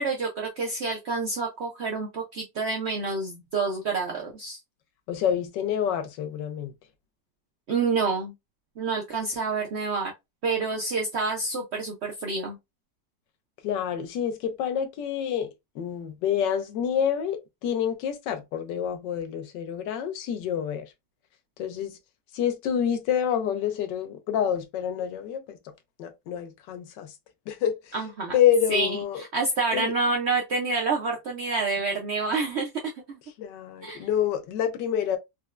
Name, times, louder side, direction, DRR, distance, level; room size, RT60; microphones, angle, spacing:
voice 1, 0.0-4.6 7.7-8.3 8.8-10.1 10.4-12.6 27.9-28.3 28.7-32.7 33.8-34.1, right 3 dB, 85° right, 0.6 m, -28 dB
voice 2, 5.1-6.7 13.6-15.5 15.7-20.9 21.6-22.0 22.3-25.6 26.0-27.1 27.5-27.9 28.3-29.2 29.7-29.9 33.4-35.2, left 9 dB, 90° left, 1.3 m, -27 dB
4.3 x 2.1 x 2.3 m
omnidirectional pair, 1.8 m